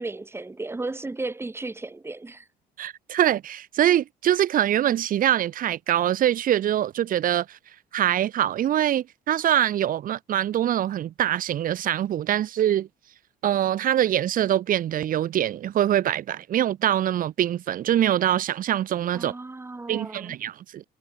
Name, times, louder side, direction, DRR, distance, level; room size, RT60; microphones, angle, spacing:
voice 1, 0.0-2.5 19.1-20.4, right 2 dB, 15° right, 4.9 m, -34 dB
voice 2, 2.8-7.6 7.9-12.9 13.4-19.3 19.9-20.8, right 11 dB, 55° right, 1.2 m, -24 dB
cardioid pair, 110°, 17 cm